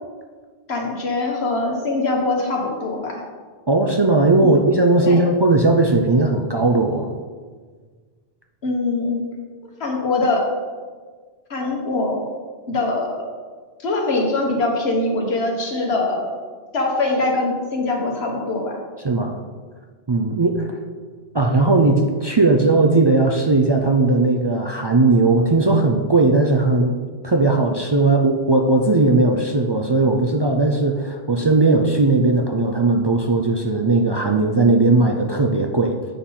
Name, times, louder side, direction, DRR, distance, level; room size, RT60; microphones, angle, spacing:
voice 1, 0.7-3.2 4.4-4.6 5.0-5.2 8.6-9.2 9.8-10.4 11.5-12.2 12.7-13.2 13.8-16.3 16.7-18.8, left 2 dB, 90° left, 0 dB, 1.6 m, -22 dB
voice 2, 3.7-7.1 19.0-19.4 20.1-20.8 21.3-27.0 27.2-35.9, right 3 dB, 35° right, 2 dB, 0.4 m, -17 dB
8.4 x 4.2 x 5.6 m, 1.5 s
omnidirectional pair, 1.0 m